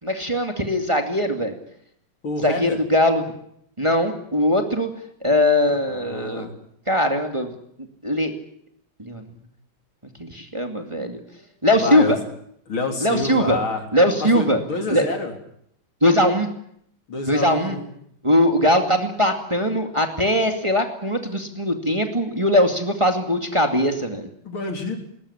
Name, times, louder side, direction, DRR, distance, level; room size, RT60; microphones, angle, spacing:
voice 1, 0.0-1.6 2.4-3.3 3.8-4.9 5.2-6.5 6.9-7.5 8.0-8.3 9.0-9.2 10.2-11.2 11.6-12.2 13.0-13.6 13.9-14.6 14.9-15.1 16.0-16.5 17.3-17.8 18.2-24.3, left 1 dB, 15° right, 5 dB, 2.3 m, -20 dB
voice 2, 2.2-2.8 5.9-6.5 11.4-11.5 11.8-12.1 12.7-13.8 14.2-15.3 17.1-17.9 24.4-25.0, left 3 dB, 80° left, 4 dB, 4.6 m, -28 dB
20.5 x 20.0 x 9.9 m, 0.70 s
omnidirectional pair, 2.2 m